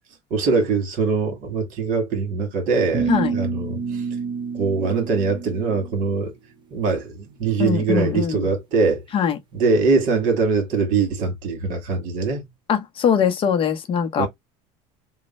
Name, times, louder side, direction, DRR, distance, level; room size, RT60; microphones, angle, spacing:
voice 1, 0.3-4.0 4.5-6.3 6.7-9.0 9.5-12.4 14.2-14.3, right 4 dB, 60° right, 1.7 m, -22 dB
sound 1, 2.9-6.1, right 5 dB, 30° right, 0.8 m, -28 dB
voice 2, 7.6-8.5 9.1-9.4 12.7-14.3, left 7 dB, 35° left, 0.7 m, -21 dB
3.1 x 2.2 x 4.1 m
cardioid pair, 130°, 15 cm